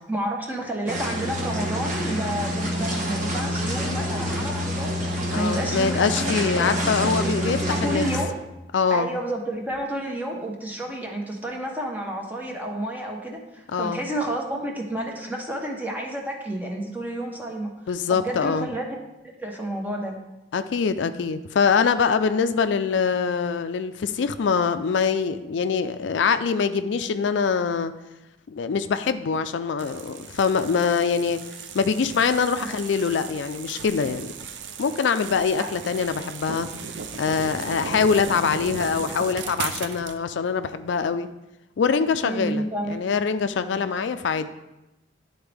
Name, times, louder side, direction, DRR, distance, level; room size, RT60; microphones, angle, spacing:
voice 1, 0.1-6.2 6.6-6.8 7.0-8.3 8.9-17.7 18.1-19.0 19.2-20.2 32.6-32.7 35.6-35.7 42.2-43.0, right 1 dB, 10° right, 0 dB, 1.0 m, -30 dB
sound 1, 0.9-8.2, equal, 45° right, 1.3 m, -27 dB
voice 2, 5.3-8.1 8.7-9.1 13.7-14.0 17.9-18.7 20.5-27.9 28.5-31.4 31.7-34.3 34.8-36.7 37.2-41.3 41.8-44.5, left 5 dB, 80° left, 10 dB, 0.4 m, -24 dB
sound 2, 29.8-40.2, right 5 dB, 75° right, 0.5 m, -36 dB
11.5 x 4.0 x 3.4 m, 0.96 s
head